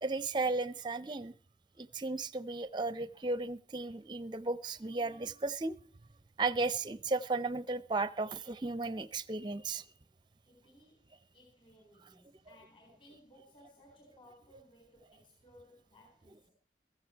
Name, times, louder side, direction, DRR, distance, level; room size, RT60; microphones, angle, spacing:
voice 1, 0.0-1.3 1.8-5.8 6.4-9.8, right 3 dB, 25° right, 0.6 m, -35 dB
voice 2, 10.5-11.1 11.3-16.5, left 1 dB, 30° left, 4.3 m, -61 dB
15.5 x 14.0 x 4.5 m
head